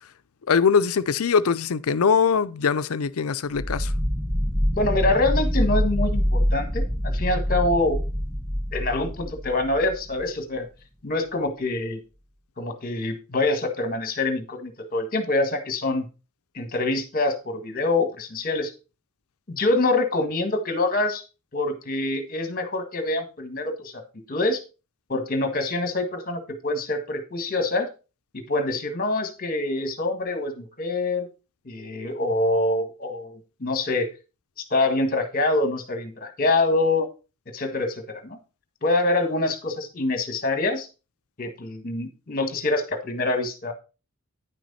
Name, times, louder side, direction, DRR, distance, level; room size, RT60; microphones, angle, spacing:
voice 1, 0.5-3.9, left 6 dB, 75° left, 0.5 m, -22 dB
sound 1, 3.6-10.3, equal, ahead, 0.6 m, -25 dB
voice 2, 4.7-8.0 8.7-10.6 11.0-12.0 12.6-16.0 16.5-18.7 19.5-21.2 21.5-24.0 24.3-24.6 25.1-27.9 28.3-31.3 31.6-34.1 34.6-37.1 37.5-38.4 38.8-40.9 41.4-43.7, left 2 dB, 40° left, 1.6 m, -25 dB
9.9 x 6.1 x 4.2 m
head